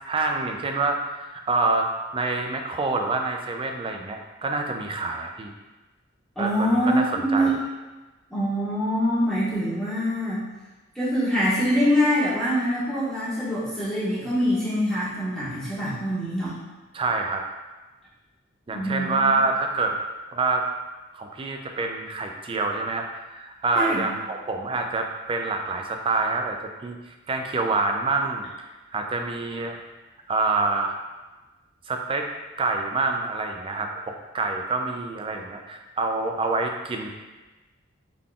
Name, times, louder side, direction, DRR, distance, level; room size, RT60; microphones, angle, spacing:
voice 1, 0.0-1.9 2.1-5.5 6.4-7.5 16.9-17.4 18.7-20.0 20.3-20.6 21.1-26.6 26.8-29.8 30.3-31.0 31.9-32.3 32.6-37.1, right 3 dB, 25° right, 3 dB, 0.3 m, -27 dB
voice 2, 6.3-7.5 8.3-10.4 10.9-16.6 18.7-19.3 23.7-24.1, equal, 5° left, -12 dB, 1.4 m, -24 dB
3.7 x 3.6 x 2.3 m, 1.2 s
head